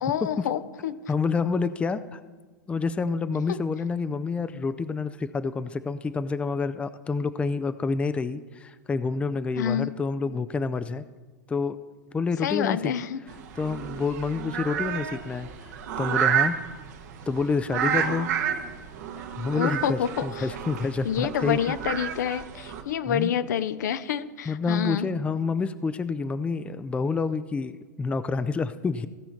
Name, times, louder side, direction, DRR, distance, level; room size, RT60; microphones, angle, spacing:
voice 1, 0.0-0.9 9.6-9.9 12.4-13.2 19.5-20.5 21.0-25.1, left 9 dB, 70° left, 13 dB, 0.6 m, -28 dB
voice 2, 1.1-2.2 2.7-11.0 11.5-11.8 12.1-12.9 13.6-16.6 17.3-18.3 19.4-21.6 23.1-23.3 24.5-29.1, left 4 dB, 10° left, 13 dB, 0.4 m, -28 dB
sound 1, 13.3-22.8, right 8 dB, 65° right, 1.2 m, -30 dB
16.5 x 5.6 x 4.5 m, 1.3 s
hypercardioid pair, 105°, 10 cm